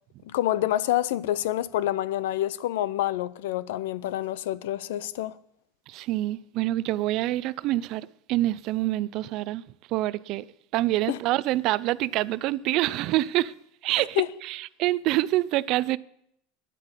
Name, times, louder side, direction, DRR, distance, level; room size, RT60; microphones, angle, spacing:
voice 1, 0.2-5.4 11.1-11.2 14.0-14.3, left 13 dB, 85° left, 0.6 m, -27 dB
voice 2, 5.9-9.6 9.9-10.5 10.7-13.5 13.8-16.0, right 16 dB, 50° right, 0.4 m, -26 dB
10.0 x 8.2 x 8.2 m
supercardioid pair, 140°, 0 cm